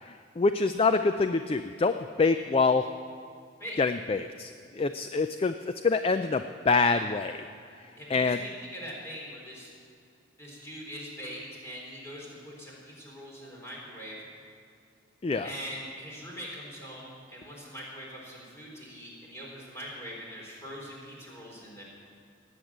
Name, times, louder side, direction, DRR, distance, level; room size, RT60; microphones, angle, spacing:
voice 1, 0.0-2.9 3.8-7.5 8.1-8.4 15.2-15.5, left 4 dB, 30° left, 9 dB, 0.3 m, -26 dB
voice 2, 8.0-9.7 10.4-14.3 15.4-21.8, equal, 15° left, -4 dB, 3.7 m, -42 dB
19.0 x 7.9 x 7.4 m, 2.3 s
head